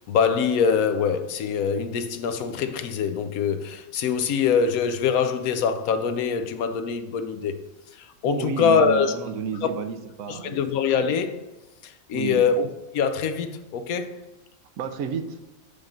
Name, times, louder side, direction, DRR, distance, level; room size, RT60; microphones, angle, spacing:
voice 1, 0.0-7.6 7.9-9.2 9.6-9.7 10.3-11.4 11.8-14.1, left 6 dB, 85° left, 1.1 m, -24 dB
voice 2, 8.2-10.6 12.1-12.5 14.8-15.4, right 7 dB, 75° right, 1.1 m, -31 dB
7.3 x 5.1 x 3.8 m
omnidirectional pair, 1.5 m